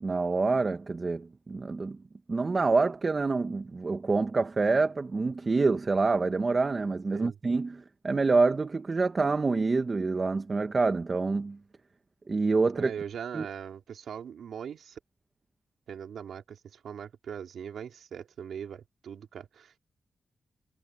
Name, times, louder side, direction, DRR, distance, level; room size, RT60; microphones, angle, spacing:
voice 1, 0.0-2.0 2.3-11.6 12.3-12.9 13.3-13.5, right 3 dB, 35° right, 1.3 m, -27 dB
voice 2, 12.8-15.0 15.9-19.8, right 8 dB, 85° right, 3.1 m, -40 dB
cardioid pair, 95°, 0 cm